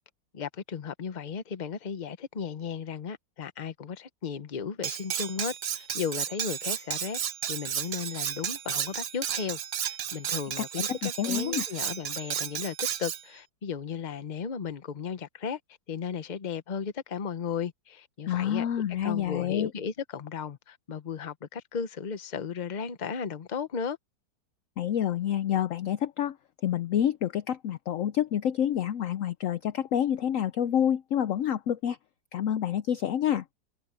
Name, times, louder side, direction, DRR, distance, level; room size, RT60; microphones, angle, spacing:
voice 1, 0.3-7.2 7.5-15.6 15.9-18.7 19.0-24.0, left 6 dB, 35° left, 0.8 m, -35 dB
Cutlery silverware, 4.8-13.2, right 9 dB, 75° right, 0.5 m, -33 dB
voice 2, 11.0-11.7 18.3-19.7 24.8-26.4 26.6-32.0 32.3-33.4, left 10 dB, 70° left, 0.8 m, -28 dB
omnidirectional pair, 1.9 m